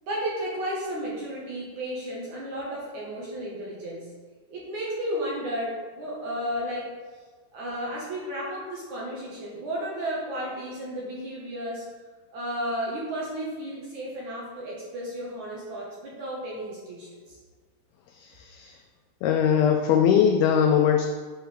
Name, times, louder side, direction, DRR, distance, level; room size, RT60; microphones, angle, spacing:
voice 1, 0.0-4.1 4.5-6.9 7.5-11.9 12.3-17.4, equal, 55° right, -5 dB, 2.3 m, -33 dB
voice 2, 18.1-18.8 19.2-21.1, left 8 dB, 90° left, 4 dB, 2.2 m, -21 dB
9.1 x 4.7 x 6.4 m, 1.5 s
omnidirectional pair, 5.2 m